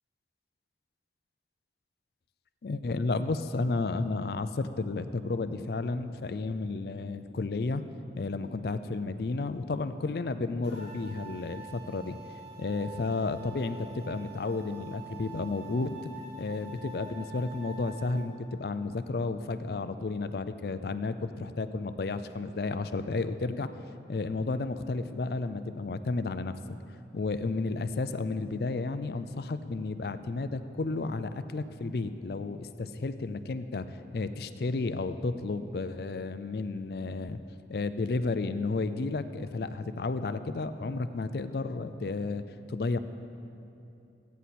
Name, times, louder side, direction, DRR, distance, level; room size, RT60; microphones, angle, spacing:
voice 1, 2.6-7.8 8.2-12.2 12.6-16.0 16.4-23.7 24.1-26.6 27.1-33.9 34.1-37.4 37.7-42.4 42.7-43.0, left 3 dB, 60° left, 11 dB, 0.4 m, -32 dB
sound 1, 10.6-18.3, right 5 dB, 65° right, 2.4 m, -46 dB
14.5 x 9.3 x 4.2 m, 2.7 s
head